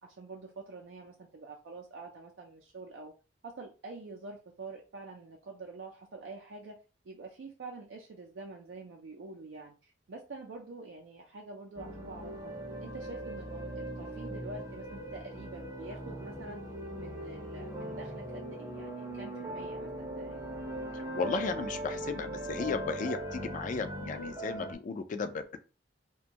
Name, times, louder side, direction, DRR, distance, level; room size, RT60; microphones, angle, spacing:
voice 1, 0.0-3.1 3.4-6.8 7.0-12.5 12.8-16.7 17.0-20.4, right 3 dB, 70° right, 0 dB, 0.4 m, -46 dB
sound 1, 11.8-24.7, right 1 dB, 20° right, 0.6 m, -40 dB
voice 2, 20.9-25.6, left 4 dB, 45° left, 10 dB, 0.3 m, -35 dB
2.5 x 2.2 x 2.8 m, 0.33 s
head